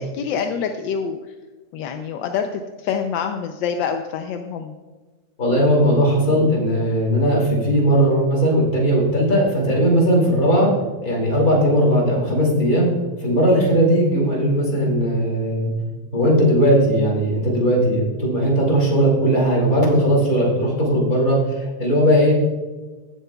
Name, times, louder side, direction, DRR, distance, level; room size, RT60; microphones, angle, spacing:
voice 1, 0.0-1.3 1.7-4.7, left 7 dB, 85° left, 5 dB, 1.3 m, -26 dB
voice 2, 5.4-10.7 11.0-12.9 13.2-15.7 16.1-22.3, equal, 50° left, -2 dB, 2.8 m, -18 dB
16.5 x 7.8 x 2.3 m, 1.3 s
omnidirectional pair, 2.0 m